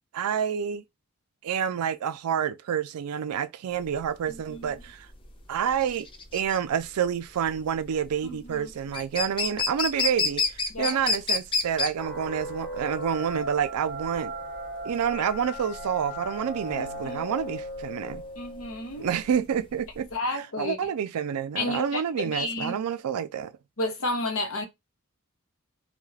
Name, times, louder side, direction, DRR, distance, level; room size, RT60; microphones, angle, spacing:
voice 1, 0.1-0.8 1.4-5.1 5.5-6.1 6.3-14.3 14.8-18.2 19.0-23.5, right 8 dB, 90° right, 0.4 m, -28 dB
sound 1, 3.8-20.1, left 4 dB, 25° left, 0.4 m, -31 dB
voice 2, 8.2-8.7 10.7-11.0 16.8-17.5 18.4-19.1 20.1-20.8 21.6-22.8 23.8-24.7, left 2 dB, 65° left, 0.8 m, -32 dB
sound 2, 12.0-19.3, equal, 5° left, 1.0 m, -37 dB
2.3 x 2.1 x 3.2 m
head